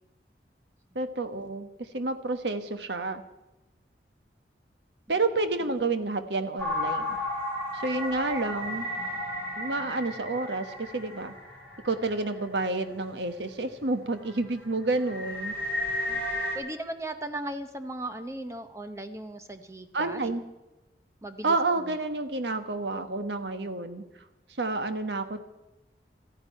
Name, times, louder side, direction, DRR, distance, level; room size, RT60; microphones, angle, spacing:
voice 1, 0.9-1.7 1.9-3.2 5.1-7.2 7.7-8.9 9.6-11.3 11.8-15.5 19.9-20.4 21.4-24.0 24.6-25.4, right 3 dB, 80° right, 9 dB, 1.2 m, -29 dB
sound 1, 6.6-12.4 12.9-13.0 13.5-13.8 14.1-16.6, left 1 dB, 10° left, 4.6 m, -33 dB
voice 2, 16.1-20.2 21.2-21.6, right 1 dB, 15° right, 9 dB, 0.7 m, -37 dB
14.0 x 10.0 x 9.3 m, 0.99 s
head